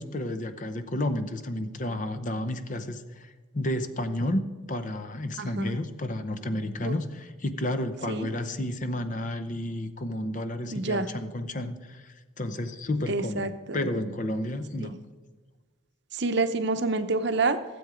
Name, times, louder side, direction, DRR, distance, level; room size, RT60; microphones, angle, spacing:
voice 1, 0.0-4.4 4.7-15.0, left 1 dB, 35° left, 10 dB, 0.7 m, -31 dB
voice 2, 5.4-5.8 6.8-6.9 8.1-8.3 10.7-11.1 13.1-13.9 14.8-14.9 16.2-17.6, right 3 dB, 55° right, 9 dB, 0.7 m, -27 dB
15.5 x 7.8 x 5.0 m, 1.3 s
head